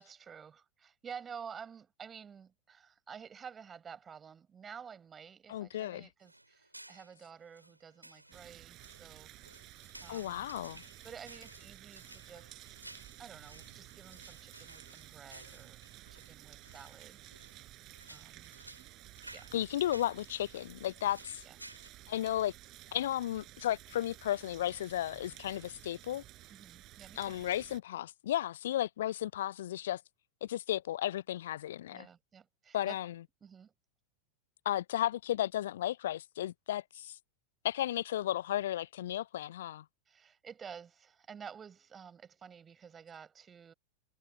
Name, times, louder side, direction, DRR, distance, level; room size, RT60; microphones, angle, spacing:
voice 1, 0.0-9.3 10.0-10.5 11.0-12.8 13.2-15.8 16.1-17.5 18.1-18.5 19.3-19.5 21.4-21.6 26.5-27.4 31.9-33.0 33.4-33.7 40.1-43.7, right 7 dB, 20° right, 6.1 m, -51 dB
voice 2, 5.5-6.1 10.1-10.8 19.5-21.4 22.1-22.5 22.9-26.2 27.2-30.0 30.4-32.1 32.7-33.1 34.6-37.2 37.6-39.8, left 12 dB, 60° left, 0.6 m, -34 dB
sound 1, 6.2-21.9, right 1 dB, 85° right, 7.0 m, -56 dB
sound 2, 8.3-27.8, right 16 dB, 35° right, 7.5 m, -54 dB
figure-of-eight pair, 90°, 0 cm